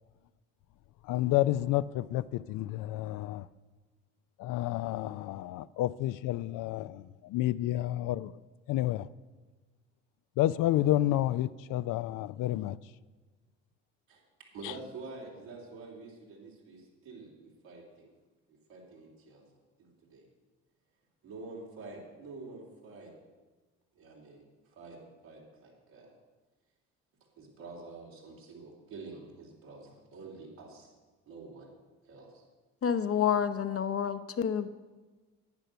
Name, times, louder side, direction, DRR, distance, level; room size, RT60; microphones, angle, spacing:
voice 1, 1.0-3.5 4.4-8.4 8.7-9.1 10.4-12.8 14.6-14.7, left 14 dB, 60° left, 0.5 m, -30 dB
voice 2, 14.5-18.1 18.5-19.5 19.8-20.3 21.2-23.1 24.0-26.2 27.4-30.9 31.3-31.7 32.0-32.4, right 3 dB, 75° right, 3.7 m, -48 dB
voice 3, 32.8-34.7, left 8 dB, 40° left, 0.8 m, -29 dB
10.5 x 9.1 x 6.8 m
hypercardioid pair, 55°, 36 cm